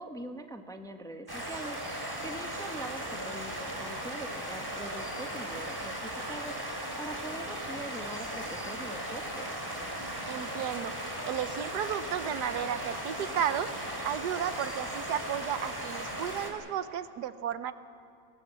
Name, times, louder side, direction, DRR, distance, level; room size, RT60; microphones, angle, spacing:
voice 1, 0.0-1.8 2.2-6.6 7.0-9.5, right 2 dB, 5° left, 6 dB, 0.8 m, -42 dB
sound 1, 1.3-16.5, right 1 dB, 15° right, 2.5 m, -37 dB
voice 2, 10.3-10.9 11.2-13.7 14.0-17.7, right 9 dB, 85° right, 12 dB, 1.4 m, -33 dB
22.5 x 18.0 x 7.5 m, 2.5 s
omnidirectional pair, 1.7 m